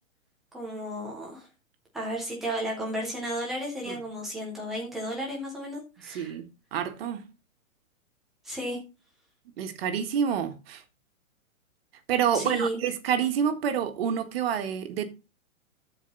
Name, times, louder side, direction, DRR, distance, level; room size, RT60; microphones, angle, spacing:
voice 1, 0.5-1.5 1.9-6.4 8.4-8.8 12.3-12.8, right 1 dB, ahead, 0.3 m, -33 dB
voice 2, 6.1-7.2 9.6-10.8 12.1-15.0, right 8 dB, 45° right, 1.6 m, -28 dB
13.5 x 4.8 x 4.0 m
hypercardioid pair, 145°, 40 cm